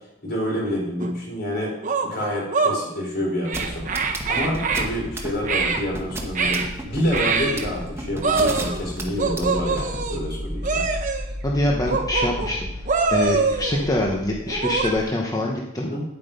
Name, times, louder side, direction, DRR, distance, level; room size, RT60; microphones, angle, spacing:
voice 1, 0.2-1.7 2.0-10.9 15.8-16.0, equal, 55° left, -2 dB, 4.4 m, -28 dB
sound 1, 1.0-1.1 1.8-2.8 3.5-4.9 5.4-5.8 6.4-6.7 7.1-7.7 8.2-8.8 9.2-10.2 10.6-11.3 11.9-12.5 12.9-13.9 14.5-14.9, right 4 dB, 40° right, 1.2 m, -24 dB
sound 2, 3.5-10.0, right 1 dB, 15° right, 1.3 m, -32 dB
sound 3, 3.7-15.0, equal, 60° right, 1.5 m, -35 dB
voice 2, 11.4-12.8 13.1-15.9, left 1 dB, 20° left, -2 dB, 1.1 m, -24 dB
10.0 x 8.2 x 5.2 m, 0.88 s
head